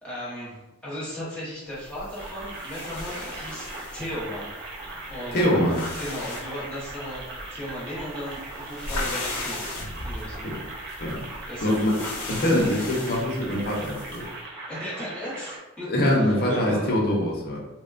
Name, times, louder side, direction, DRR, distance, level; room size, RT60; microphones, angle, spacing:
voice 1, 0.0-4.5 5.1-5.6 6.0-7.2 7.5-9.7 10.0-10.5 11.5-12.0 12.9-13.0 14.7-15.9 16.2-17.1, equal, 5° left, -10 dB, 1.0 m, -36 dB
sound 1, 1.8-14.4, left 2 dB, 85° left, 0.7 m, -38 dB
sound 2, 2.2-15.6, right 2 dB, 55° right, 0.6 m, -39 dB
voice 2, 5.3-5.8 10.4-10.6 11.0-11.2 11.6-11.9 12.3-14.3 15.9-17.6, left 1 dB, 45° left, -1 dB, 0.6 m, -23 dB
3.1 x 2.2 x 2.4 m, 1.0 s
head